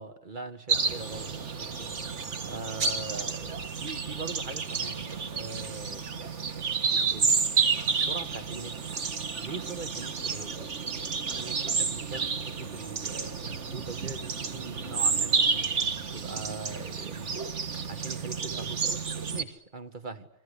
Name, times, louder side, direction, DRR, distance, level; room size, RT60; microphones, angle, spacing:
voice 1, 0.0-2.0 2.5-6.1 6.9-7.5 7.9-8.8 9.3-11.0 11.4-15.7 16.1-20.3, right 3 dB, 45° right, 1.9 m, -42 dB
sound 1, 0.7-19.4, right 5 dB, 80° right, 1.9 m, -30 dB
29.5 x 23.5 x 8.5 m
omnidirectional pair, 1.2 m